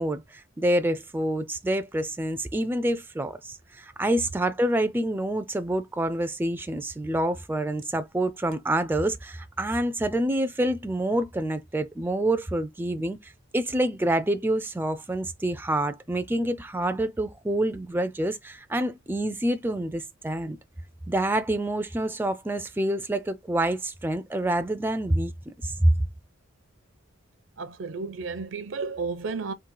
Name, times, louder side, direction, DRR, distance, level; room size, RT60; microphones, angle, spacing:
voice 1, 0.0-20.6 21.1-26.0, right 1 dB, 10° right, 0.3 m, -27 dB
voice 2, 27.6-29.5, right 4 dB, 70° right, 0.6 m, -32 dB
3.8 x 2.3 x 4.6 m
head